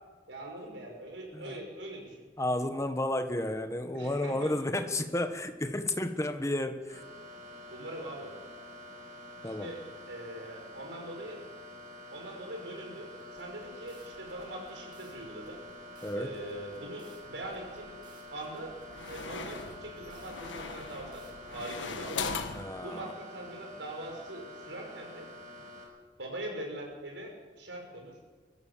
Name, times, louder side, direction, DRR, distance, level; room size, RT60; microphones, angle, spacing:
voice 1, 0.3-2.2 3.9-4.5 7.7-8.3 9.4-9.8 10.1-11.4 12.1-15.6 16.1-17.9 18.3-18.7 19.1-22.3 22.8-25.3 26.2-27.3 27.6-28.1, right 1 dB, 75° right, 1 dB, 6.2 m, -42 dB
voice 2, 2.4-7.0 9.4-9.7 16.0-16.3 22.5-23.1, left 1 dB, 15° left, 8 dB, 1.4 m, -32 dB
sound 1, 6.9-25.8, left 1 dB, 45° right, 6.1 m, -48 dB
sound 2, 13.3-21.3, right 2 dB, 25° right, 4.9 m, -59 dB
sound 3, 17.4-18.0 18.7-22.7, left 5 dB, 85° left, 1.5 m, -39 dB
24.0 x 15.0 x 7.5 m, 1.5 s
head